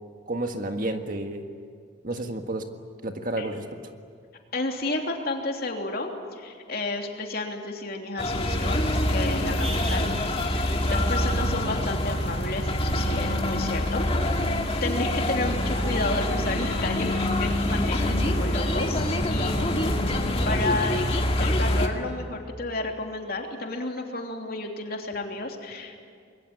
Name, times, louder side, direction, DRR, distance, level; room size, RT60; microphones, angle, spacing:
voice 1, 0.3-1.5 2.0-2.7 3.0-3.6, right 1 dB, 45° right, 5 dB, 1.7 m, -30 dB
voice 2, 4.5-10.1 10.5-20.1 20.4-21.0 21.4-26.0, left 2 dB, 50° left, 2 dB, 3.1 m, -32 dB
sound 1, 8.2-21.9, left 1 dB, 30° left, 2.2 m, -25 dB
25.5 x 22.0 x 9.6 m, 2.1 s
head